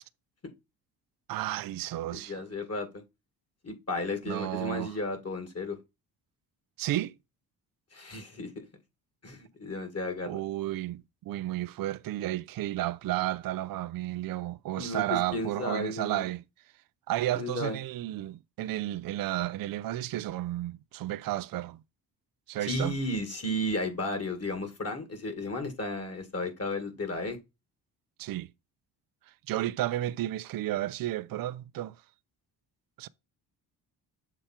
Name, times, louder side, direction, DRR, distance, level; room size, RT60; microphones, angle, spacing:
voice 1, 1.3-2.4 4.3-4.9 6.8-7.1 10.3-16.4 17.1-21.8 22.5-22.9 28.2-28.5 29.5-31.9 33.0-33.1, right 14 dB, 55° right, 0.5 m, -32 dB
voice 2, 2.1-3.0 3.6-5.8 7.9-8.5 9.2-10.4 14.8-16.3 17.4-17.8 22.6-27.4, left 1 dB, 35° left, 2.0 m, -34 dB
7.0 x 3.2 x 4.3 m
supercardioid pair, 55°, 43 cm